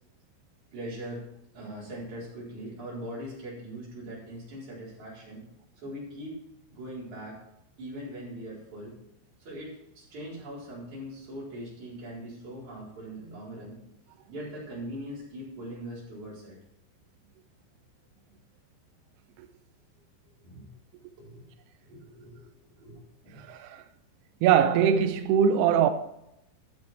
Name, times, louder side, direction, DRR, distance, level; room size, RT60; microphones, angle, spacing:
voice 1, 0.7-1.3 1.5-5.4 5.8-6.4 6.7-7.4 7.8-8.9 9.4-13.7 14.3-16.6 20.4-20.6 21.1-21.5 21.8-22.5 22.8-23.4, equal, 40° right, 5.4 m, -41 dB
voice 2, 23.4-23.8 24.4-25.9, right 8 dB, 85° right, 2.3 m, -22 dB
13.0 x 7.9 x 4.4 m
omnidirectional pair, 5.4 m